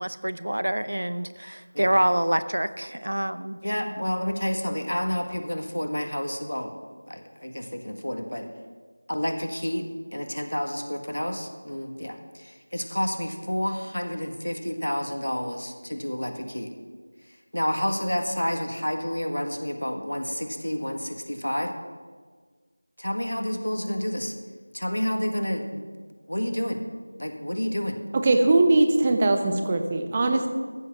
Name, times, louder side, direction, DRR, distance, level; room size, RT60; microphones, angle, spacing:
voice 1, 0.0-3.6, right 1 dB, 70° right, 13 dB, 0.7 m, -26 dB
voice 2, 3.6-6.7 7.1-8.5 9.1-16.7 17.5-21.7 23.0-24.3 24.7-25.9 26.3-26.8 27.2-28.0, equal, 85° left, 5 dB, 1.7 m, -29 dB
voice 3, 28.1-30.5, right 2 dB, 20° right, 6 dB, 0.7 m, -21 dB
14.5 x 8.3 x 6.0 m, 1.5 s
figure-of-eight pair, 175°, 0 cm